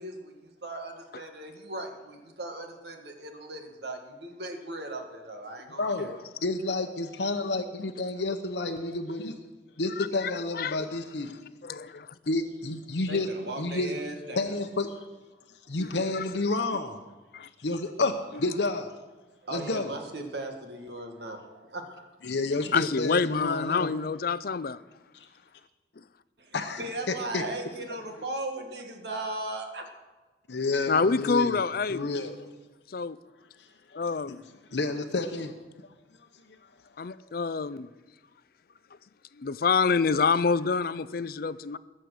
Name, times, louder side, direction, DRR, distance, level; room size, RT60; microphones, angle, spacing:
voice 1, 0.0-6.1 13.1-14.5 19.4-22.1 26.4-29.9, right 2 dB, 60° right, 1.9 m, -38 dB
voice 2, 5.8-6.1 6.4-9.4 9.8-11.4 12.3-13.3 13.6-14.0 14.3-15.0 15.5-17.0 17.4-18.9 19.5-19.9 22.2-23.9 25.1-25.3 26.5-27.4 30.5-31.6 31.9-32.4 33.6-34.0 34.7-35.5 36.3-36.6 37.0-37.2, left 2 dB, 70° left, 0.9 m, -30 dB
voice 3, 10.0-10.9 11.6-12.1 15.8-16.2 17.3-17.5 22.7-24.8 30.9-32.1 32.9-33.2 34.0-34.4 37.0-37.9 39.4-41.8, left 5 dB, 50° left, 0.5 m, -27 dB
20.5 x 7.6 x 6.5 m
head